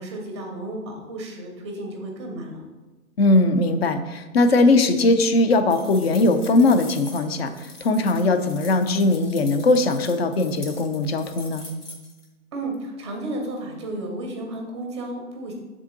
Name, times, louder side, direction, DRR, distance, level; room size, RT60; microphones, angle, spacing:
voice 1, 0.0-2.6 12.5-15.5, right 1 dB, 20° right, 1 dB, 0.6 m, -33 dB
voice 2, 3.2-11.6, left 2 dB, 45° left, 8 dB, 0.5 m, -20 dB
sound 1, 5.7-12.3, left 3 dB, 90° left, 1.7 m, -43 dB
6.8 x 3.7 x 3.7 m, 1.2 s
hypercardioid pair, 150°, 45 cm